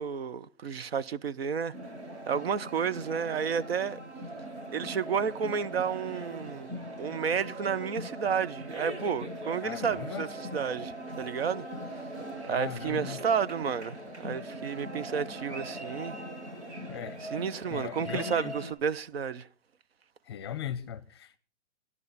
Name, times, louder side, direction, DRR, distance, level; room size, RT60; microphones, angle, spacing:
voice 1, 0.0-1.7 2.3-4.0 4.7-11.6 12.4-14.0 14.2-16.2 17.2-19.5, right 7 dB, 60° right, 0.8 m, -31 dB
sound 1, 1.7-18.7, right 1 dB, 85° right, 6.5 m, -40 dB
voice 2, 9.6-10.3 12.5-13.2 16.9-17.2 17.7-18.5 20.3-21.4, left 10 dB, 25° left, 0.7 m, -38 dB
15.5 x 11.0 x 4.1 m
hypercardioid pair, 170°, 34 cm